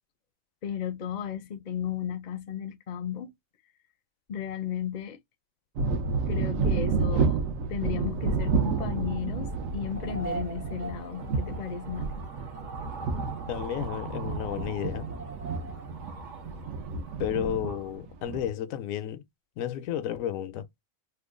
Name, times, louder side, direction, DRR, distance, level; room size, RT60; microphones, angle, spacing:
voice 1, 0.6-3.3 4.3-5.2 6.3-7.4 7.7-12.3, left 8 dB, 50° left, 0.5 m, -34 dB
sound 1, 5.8-18.5, right 4 dB, 80° right, 1.1 m, -30 dB
sound 2, 8.1-17.9, right 3 dB, 45° right, 0.7 m, -43 dB
voice 2, 13.5-15.1 17.2-19.2 19.6-20.7, left 10 dB, 85° left, 1.0 m, -32 dB
3.0 x 2.2 x 3.5 m
omnidirectional pair, 1.4 m